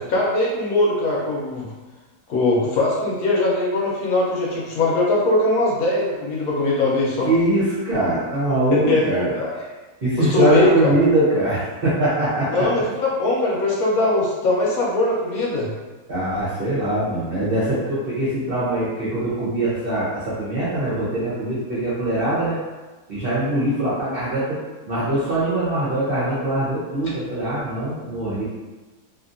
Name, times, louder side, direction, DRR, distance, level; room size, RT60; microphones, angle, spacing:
voice 1, 0.1-1.7 2.3-7.3 8.7-9.5 10.2-10.9 12.5-15.7, left 2 dB, 70° left, -4 dB, 1.1 m, -21 dB
voice 2, 7.2-9.3 10.0-12.7 16.1-22.6 23.1-24.6 24.9-28.4, right 1 dB, 50° right, -10 dB, 0.7 m, -22 dB
2.7 x 2.6 x 2.5 m, 1.2 s
omnidirectional pair, 1.7 m